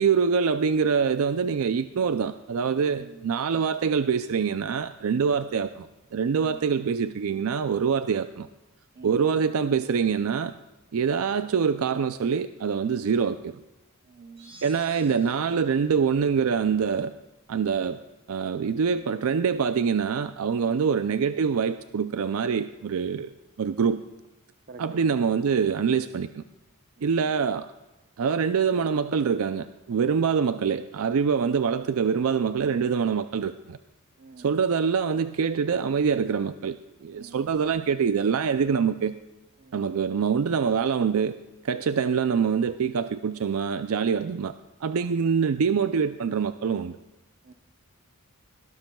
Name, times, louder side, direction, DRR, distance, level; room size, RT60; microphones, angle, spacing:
voice 1, 0.0-8.5 9.0-10.5 10.9-13.6 14.6-17.1 17.5-18.0 18.3-23.3 23.6-24.0 24.8-26.4 27.0-27.7 28.2-33.8 34.4-39.2 39.7-41.4 41.6-44.5 44.8-47.0, right 6 dB, 70° right, 11 dB, 0.4 m, -25 dB
voice 2, 2.9-3.4 6.4-6.6 8.9-9.4 14.0-14.6 20.6-20.9 24.7-25.1 34.2-34.5 37.1-37.5 39.6-39.8 47.4-47.5, right 3 dB, 45° right, 9 dB, 0.7 m, -48 dB
sound 1, 14.4-15.7, right 1 dB, 25° right, 2.9 m, -51 dB
21.0 x 12.5 x 2.3 m, 1.0 s
head